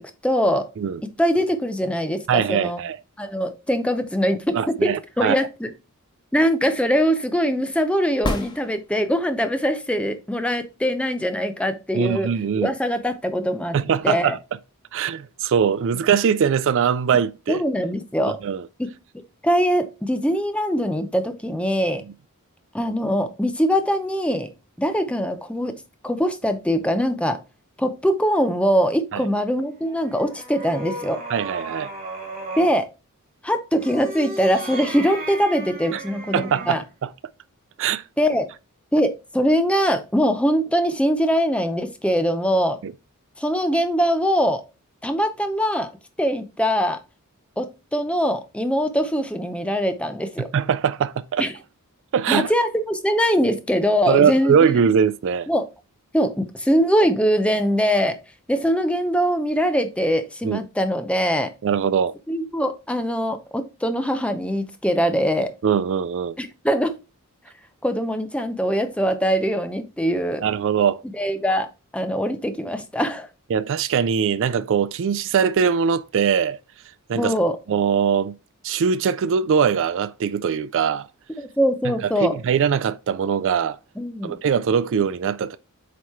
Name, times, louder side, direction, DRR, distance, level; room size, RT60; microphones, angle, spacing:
voice 1, 0.0-0.7 1.2-2.8 3.2-5.7 6.3-12.3 12.6-13.7 14.0-14.4 17.5-18.4 18.8-18.9 19.4-22.0 22.7-24.5 24.8-25.8 26.0-27.4 27.8-31.2 32.6-32.9 33.4-36.8 38.2-38.5 38.9-42.8 43.4-44.6 45.0-45.9 46.2-47.0 47.6-50.5 51.4-51.5 52.3-54.6 55.5-55.7 56.1-58.2 58.5-61.5 62.3-65.5 66.4-67.0 67.8-70.4 71.1-71.7 71.9-73.3 77.2-77.6 81.4-82.4 84.0-84.4, equal, 5° left, 0.7 m, -22 dB
voice 2, 2.3-3.0 4.5-5.4 11.9-12.7 13.7-14.4 14.9-17.6 18.3-18.6 29.1-29.2 31.3-31.9 35.9-36.0 36.3-37.1 37.8-38.0 42.8-42.9 50.5-51.5 52.1-52.5 54.1-55.5 60.4-60.6 61.6-62.1 65.6-66.4 70.4-71.0 73.5-76.6 77.1-77.3 77.7-78.3 78.6-81.1 81.8-81.9 82.2-83.8 84.2-85.6, right 7 dB, 60° right, 0.4 m, -21 dB
sound 1, 8.2-9.4 13.2-13.3, left 1 dB, 20° left, 1.2 m, -29 dB
sound 2, 29.8-32.8 33.7-36.9, right 2 dB, 40° right, 2.7 m, -35 dB
8.1 x 3.1 x 4.3 m
head